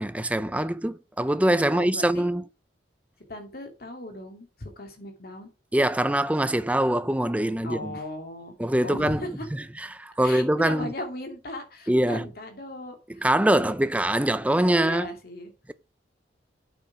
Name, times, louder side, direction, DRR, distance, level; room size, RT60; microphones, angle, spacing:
voice 1, 0.0-2.4 5.7-7.9 8.6-10.9 11.9-12.2 13.2-15.1, right 1 dB, 10° right, 0.5 m, -24 dB
voice 2, 1.6-2.3 3.3-5.5 7.6-8.5 8.8-9.3 10.2-13.8 14.7-15.5, left 1 dB, 55° left, 2.4 m, -37 dB
8.7 x 6.1 x 4.9 m
head